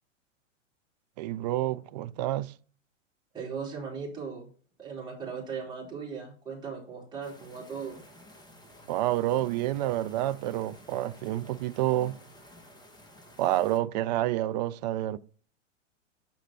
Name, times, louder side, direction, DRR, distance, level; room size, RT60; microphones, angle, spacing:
voice 1, 1.2-2.5 8.9-12.2 13.4-15.2, right 14 dB, 35° right, 0.4 m, -28 dB
voice 2, 3.3-4.5 4.8-8.0, right 5 dB, 10° right, 3.3 m, -38 dB
sound 1, 7.2-13.8, left 1 dB, 10° left, 1.4 m, -53 dB
6.4 x 5.0 x 4.3 m
figure-of-eight pair, 95°, 38 cm